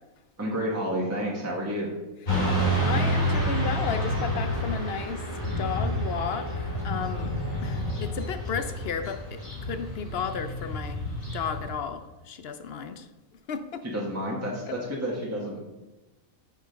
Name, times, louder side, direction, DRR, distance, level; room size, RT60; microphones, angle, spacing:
voice 1, 0.4-1.9 13.8-15.6, equal, 10° right, -4 dB, 1.4 m, -30 dB
Motorcycle / Traffic noise roadway noise, 2.3-11.7, equal, 75° left, 3.0 m, -29 dB
voice 2, 2.3-7.3 7.6-11.0 11.3-13.1 13.5-13.8 14.7-14.8, left 6 dB, 55° left, 10 dB, 0.8 m, -34 dB
6.6 x 6.5 x 5.2 m, 1.1 s
omnidirectional pair, 1.4 m